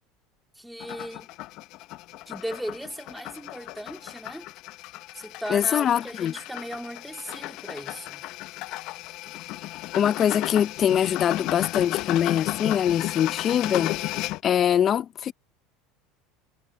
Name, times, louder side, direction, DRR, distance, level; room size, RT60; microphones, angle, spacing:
voice 1, 0.5-1.3 2.3-4.5 5.1-8.2, equal, ahead, 3.0 m, -37 dB
sound 1, 0.8-14.4, left 17 dB, 60° left, 1.1 m, -34 dB
voice 2, 5.5-6.3 9.9-14.0 14.4-15.3, left 9 dB, 40° left, 0.7 m, -23 dB
hypercardioid pair, 95°, 0 cm